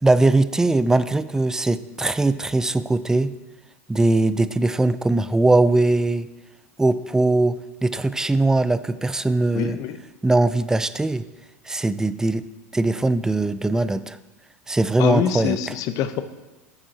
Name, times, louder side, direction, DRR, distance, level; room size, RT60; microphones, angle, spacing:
voice 1, 0.0-3.3 3.9-6.3 6.8-7.6 7.8-9.8 10.2-11.2 11.7-12.5 12.7-14.2 14.7-15.6, right 2 dB, 5° right, 14 dB, 0.3 m, -20 dB
voice 2, 9.5-10.0 15.0-16.2, left 9 dB, 50° left, 11 dB, 0.7 m, -25 dB
9.6 x 7.5 x 2.8 m, 1.1 s
hypercardioid pair, 95°, 8 cm